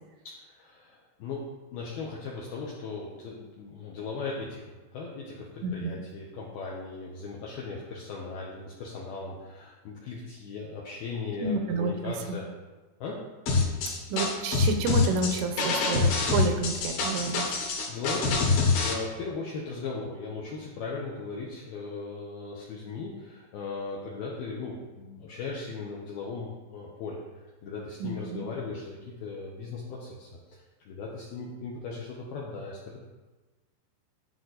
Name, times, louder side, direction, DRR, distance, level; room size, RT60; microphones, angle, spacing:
voice 1, 0.4-1.4 1.7-12.5 13.0-13.2 17.4-27.3 27.6-33.0, left 4 dB, 85° left, -3 dB, 2.2 m, -38 dB
voice 2, 5.6-6.0 11.4-12.4 14.1-17.4 28.0-28.4, right 3 dB, 80° right, 5 dB, 3.1 m, -30 dB
sound 1, 13.5-18.9, left 4 dB, 60° left, 2.9 m, -25 dB
11.5 x 6.4 x 4.0 m, 1.2 s
omnidirectional pair, 5.7 m